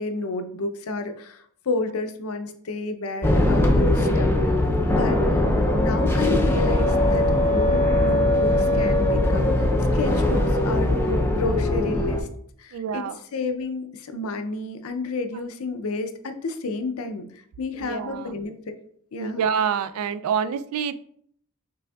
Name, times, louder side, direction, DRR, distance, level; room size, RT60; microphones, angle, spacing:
voice 1, 0.0-4.3 4.9-5.4 5.7-12.3 12.6-13.1 13.3-18.5 19.1-19.4, left 3 dB, 75° left, 8 dB, 0.6 m, -30 dB
sound 1, 3.2-12.2, left 1 dB, 10° left, 0.4 m, -20 dB
voice 2, 12.7-13.2 17.8-18.3 19.2-20.9, right 7 dB, 80° right, 13 dB, 0.3 m, -26 dB
6.0 x 3.4 x 2.3 m, 0.64 s
head